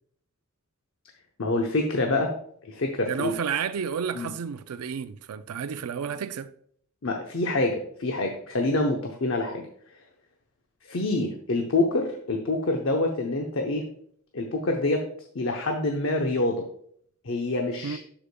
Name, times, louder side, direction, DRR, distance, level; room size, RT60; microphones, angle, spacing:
voice 1, 1.4-2.3 2.7-3.3 4.1-4.3 7.0-9.7 10.9-13.8 14.3-15.0 15.3-16.6 17.2-18.0, left 2 dB, 60° left, 0.8 m, -26 dB
voice 2, 3.1-6.5 17.8-18.0, right 7 dB, 80° right, 0.4 m, -31 dB
11.5 x 5.0 x 2.2 m
head